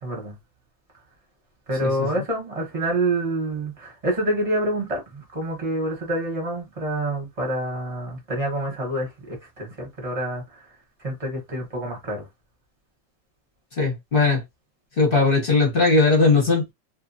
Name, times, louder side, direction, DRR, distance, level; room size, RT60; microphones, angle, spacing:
voice 1, 0.0-0.3 1.7-10.4 11.0-12.2, right 1 dB, 25° right, 0.9 m, -27 dB
voice 2, 1.8-2.2 13.8-14.4 15.0-16.7, left 3 dB, 40° left, 0.9 m, -19 dB
2.7 x 2.6 x 2.6 m
omnidirectional pair, 2.1 m